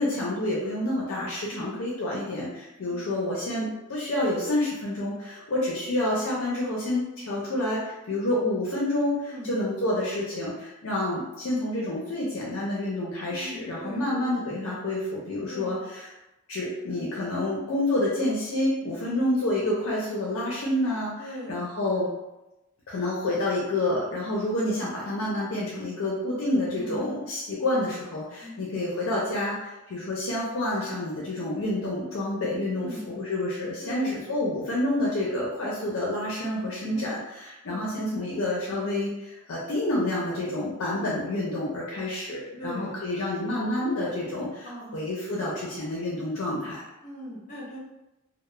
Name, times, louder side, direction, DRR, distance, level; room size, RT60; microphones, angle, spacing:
voice 1, 0.0-16.1 16.5-21.1 21.5-22.1 22.9-46.8, left 1 dB, 65° left, -5 dB, 0.5 m, -28 dB
voice 2, 13.3-14.1 15.5-15.8 19.0-19.2 21.2-21.7 26.7-27.1 28.4-28.6 32.7-33.1 33.8-34.2 36.9-37.2 37.7-38.0 42.6-43.0 44.6-45.1 47.0-47.8, equal, 35° left, -6 dB, 0.9 m, -39 dB
2.3 x 2.0 x 3.0 m, 0.98 s
head